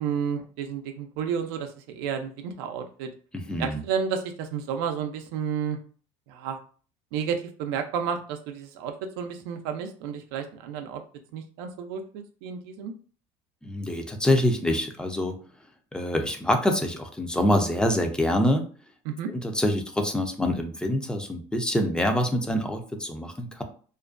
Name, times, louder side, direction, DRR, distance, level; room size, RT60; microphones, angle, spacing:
voice 1, 0.0-3.1 3.6-5.8 6.3-6.6 7.1-11.0 11.3-12.9 19.1-19.3, right 7 dB, 85° right, 5 dB, 0.4 m, -31 dB
voice 2, 3.3-3.8 13.6-15.4 15.9-18.6 19.3-23.6, left 1 dB, 5° left, 5 dB, 0.4 m, -25 dB
2.4 x 2.2 x 2.4 m, 0.41 s
cardioid pair, 115°, 12 cm